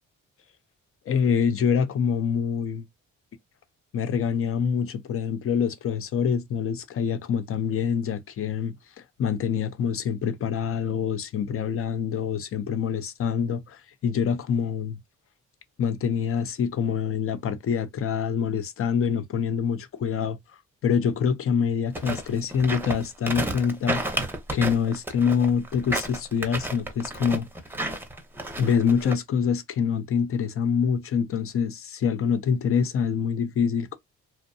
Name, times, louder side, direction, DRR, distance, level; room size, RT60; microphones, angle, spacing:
voice 1, 1.1-2.9 3.9-15.0 15.8-20.4 20.8-24.2 24.5-27.4 28.6-34.0, left 7 dB, 45° left, 0.5 m, -25 dB
sound 1, 21.9-29.1, right 1 dB, 5° right, 0.7 m, -31 dB
2.6 x 2.1 x 2.6 m
cardioid pair, 90°, 30 cm